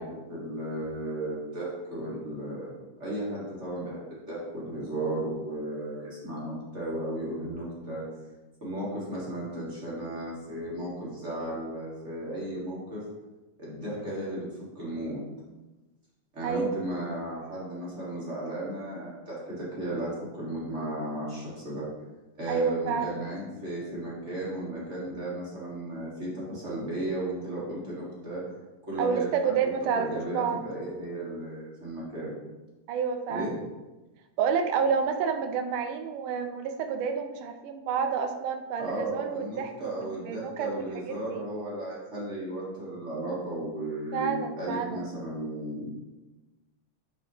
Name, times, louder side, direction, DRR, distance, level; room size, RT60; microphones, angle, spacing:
voice 1, 0.0-2.7 3.0-8.0 8.6-13.0 13.6-14.5 14.7-15.2 16.3-21.9 22.4-28.4 28.9-29.5 29.9-32.3 33.3-33.5 38.8-45.9, right 1 dB, 30° right, -7 dB, 1.4 m, -35 dB
voice 2, 16.4-16.8 22.5-23.2 29.0-30.6 32.9-33.5 34.4-41.4 44.1-45.0, right 6 dB, 90° right, 6 dB, 2.2 m, -29 dB
6.2 x 6.0 x 2.9 m, 1.1 s
omnidirectional pair, 3.5 m